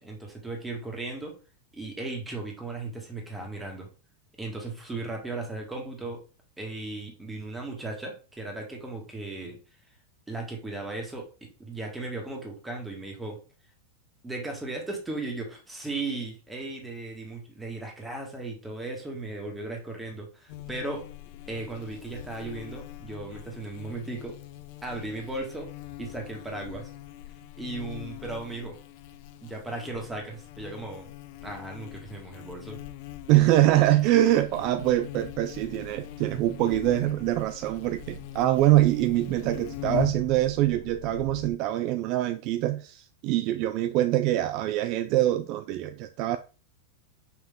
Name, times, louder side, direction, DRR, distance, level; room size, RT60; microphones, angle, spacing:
voice 1, 0.0-1.4 1.7-3.9 4.4-6.2 6.6-9.6 10.3-13.4 14.2-21.1 21.5-24.4 24.8-26.9 27.6-28.8 29.4-31.1 31.4-32.8, right 2 dB, 5° right, 1.8 m, -36 dB
Buzz, 20.5-40.3, left 16 dB, 50° left, 0.5 m, -42 dB
voice 2, 33.3-46.4, right 14 dB, 40° right, 0.4 m, -24 dB
sound 1, 35.6-41.5, left 4 dB, 75° left, 1.3 m, -47 dB
5.7 x 5.5 x 3.6 m
supercardioid pair, 155°, 0 cm